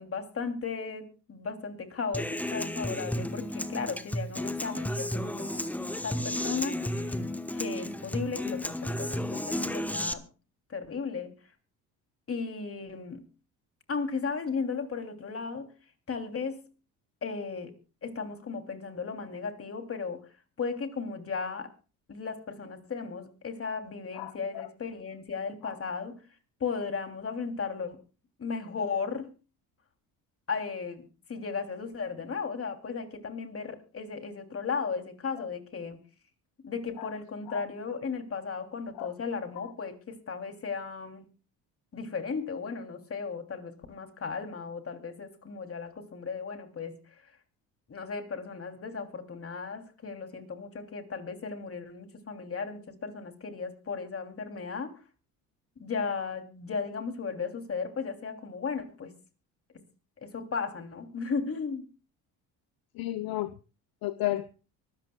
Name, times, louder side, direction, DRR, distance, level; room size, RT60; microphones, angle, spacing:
voice 1, 0.0-5.7 6.0-7.2 7.5-10.2 10.7-11.3 12.3-13.2 13.9-15.7 16.1-16.6 17.2-17.7 18.0-20.2 20.6-21.7 22.1-26.2 26.6-28.0 28.4-29.3 30.5-36.0 36.6-41.2 41.9-47.0 47.9-54.9 55.8-59.1 60.2-61.8, left 5 dB, 35° left, 5 dB, 2.9 m, -35 dB
Human voice / Acoustic guitar, 2.1-10.1, left 1 dB, 5° left, 1.0 m, -33 dB
voice 2, 24.1-24.7 25.6-25.7 37.0-37.1 37.5-37.6 38.9-39.1 62.9-63.5 64.0-64.5, left 16 dB, 60° left, 12 dB, 0.9 m, -33 dB
24.5 x 13.5 x 2.3 m, 0.34 s
supercardioid pair, 70°, 39 cm